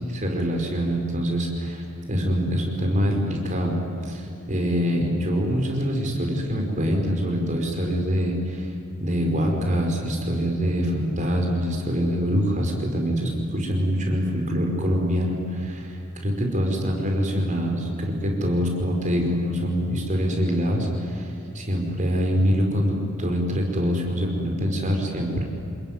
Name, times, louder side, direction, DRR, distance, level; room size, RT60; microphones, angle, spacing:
voice 1, 0.1-3.8 4.0-8.7 9.0-15.9 16.2-25.4, equal, 35° right, 1 dB, 5.2 m, -24 dB
28.0 x 21.5 x 9.7 m, 2.7 s
head